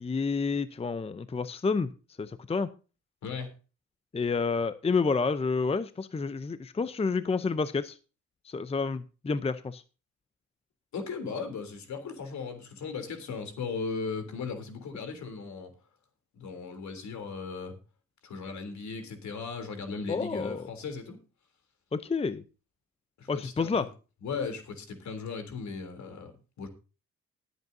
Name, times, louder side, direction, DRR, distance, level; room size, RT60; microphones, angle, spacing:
voice 1, 0.0-1.9 2.2-2.7 4.1-8.0 8.4-9.8 20.1-20.7 21.9-22.4 23.3-23.9, left 4 dB, 20° left, 13 dB, 0.7 m, -29 dB
voice 2, 10.9-15.7 16.4-17.7 18.2-21.2 23.2-23.7 24.2-26.3 26.6-26.7, left 5 dB, 65° left, 7 dB, 3.4 m, -37 dB
20.0 x 8.2 x 2.8 m, 0.33 s
cardioid pair, 90°, 30 cm